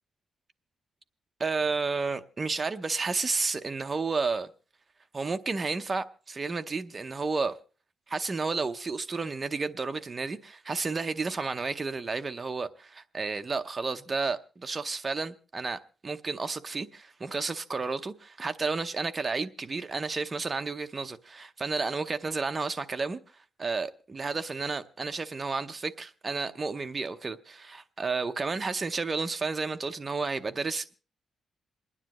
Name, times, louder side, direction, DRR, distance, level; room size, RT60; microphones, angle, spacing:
voice 1, 1.4-4.5 5.1-7.6 8.1-23.2 23.6-30.9, right 4 dB, 25° right, 0.7 m, -31 dB
27.5 x 9.9 x 3.0 m
wide cardioid pair, 160°, 0 cm